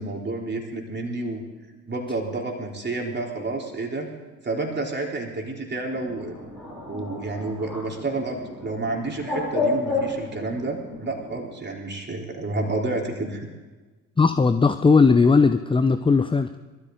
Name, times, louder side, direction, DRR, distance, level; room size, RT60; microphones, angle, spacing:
voice 1, 0.0-1.4 1.9-4.1 4.4-6.4 6.9-13.5, right 2 dB, 25° right, 0 dB, 3.7 m, -30 dB
Bird, 5.9-11.4, left 3 dB, 90° left, 6.5 m, -31 dB
voice 2, 14.2-16.5, left 4 dB, 15° left, 10 dB, 0.6 m, -18 dB
22.0 x 13.5 x 3.9 m, 1.3 s
figure-of-eight pair, 50°, 41 cm